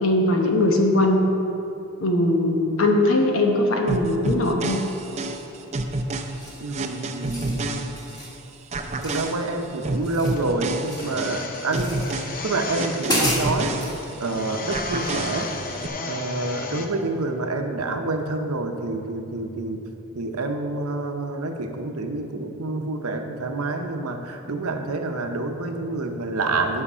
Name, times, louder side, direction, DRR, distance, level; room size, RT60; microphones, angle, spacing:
voice 1, 0.0-1.2 2.0-4.8, left 1 dB, 65° left, 2 dB, 1.0 m, -20 dB
sound 1, 3.9-8.3 8.7-14.3 14.7-15.9, right 2 dB, 30° right, 0.5 m, -29 dB
sound 2, 5.5-5.7 6.3-6.4 7.2-7.9 8.8-9.3 9.8-16.9, left 3 dB, 40° left, 0.7 m, -35 dB
sound 3, 6.4-6.7 7.1-7.6 8.0-8.3 9.0-9.7 9.9-11.2 11.7-12.1 12.6-12.7 13.0-14.0, equal, 20° left, 1.8 m, -29 dB
voice 2, 6.6-7.9 9.0-12.0 12.4-13.7 14.2-15.5 16.0-19.9 20.1-26.8, right 2 dB, 80° right, 5 dB, 0.8 m, -28 dB
9.9 x 6.6 x 5.5 m, 2.9 s
head